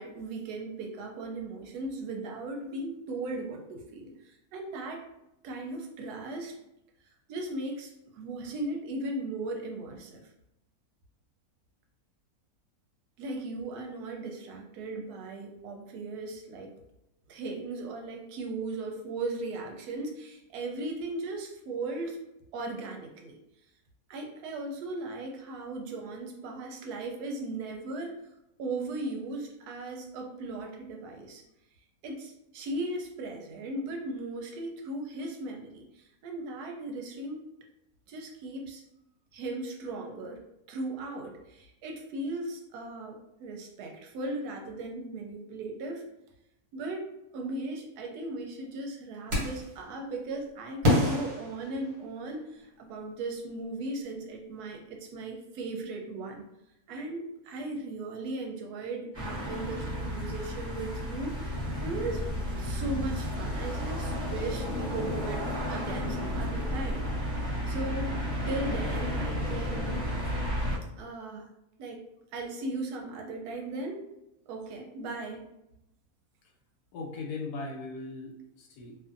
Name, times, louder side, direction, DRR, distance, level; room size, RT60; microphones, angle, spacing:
voice 1, 0.0-5.0 5.4-6.5 7.3-10.2 13.2-16.7 17.3-22.2 22.5-23.4 24.1-28.2 28.6-31.4 32.0-37.5 38.1-38.8 39.3-40.4 40.7-46.0 46.7-56.4 56.9-62.2 62.6-67.0 67.7-68.1 68.5-70.0 71.0-71.5 71.8-72.0 72.3-74.0 74.5-75.5, right 2 dB, 85° right, 1 dB, 1.1 m, -37 dB
sound 1, 49.3-49.8 50.8-52.4, left 1 dB, 60° right, 1.3 m, -27 dB
sound 2, 59.1-70.8, equal, 30° left, 1.0 m, -32 dB
voice 2, 76.9-79.0, left 3 dB, 80° left, 0 dB, 1.1 m, -38 dB
2.6 x 2.5 x 2.5 m, 0.88 s
omnidirectional pair, 1.6 m